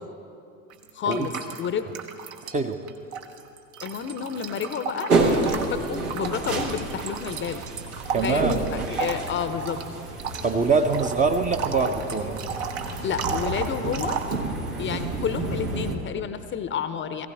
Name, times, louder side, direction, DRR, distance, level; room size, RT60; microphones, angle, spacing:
sound 1, 0.7-2.6 2.9-14.4, right 6 dB, 60° right, 1.2 m, -34 dB
voice 1, 0.9-1.9 3.8-5.1 5.5-7.6 8.2-9.8 13.0-14.2 14.8-17.3, left 7 dB, 25° left, 11 dB, 0.7 m, -30 dB
sound 2, 5.1-15.9, right 3 dB, 85° right, 1.5 m, -29 dB
voice 2, 8.1-8.6 10.4-12.4, right 4 dB, 20° right, 5 dB, 0.6 m, -24 dB
19.0 x 15.5 x 3.4 m, 2.5 s
figure-of-eight pair, 70°, 43 cm